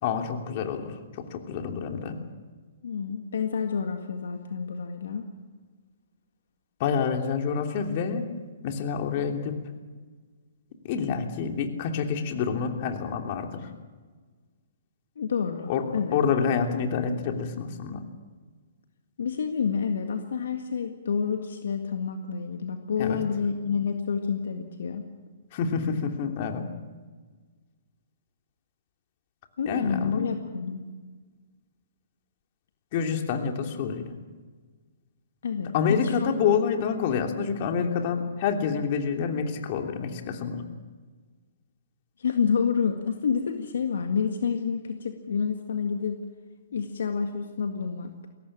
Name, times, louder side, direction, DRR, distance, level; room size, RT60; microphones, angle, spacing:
voice 1, 0.0-2.2 6.8-8.3 8.6-9.6 10.8-13.7 15.7-18.0 23.0-23.2 25.5-26.6 29.6-30.3 32.9-34.2 35.7-40.7, left 6 dB, 45° left, 4 dB, 3.0 m, -28 dB
voice 2, 2.8-5.3 15.2-16.2 19.2-25.0 29.6-30.8 35.4-36.3 42.2-46.2 46.7-48.1, left 6 dB, 70° left, 5 dB, 1.8 m, -29 dB
22.0 x 17.5 x 7.4 m, 1.4 s
hypercardioid pair, 125°, 0 cm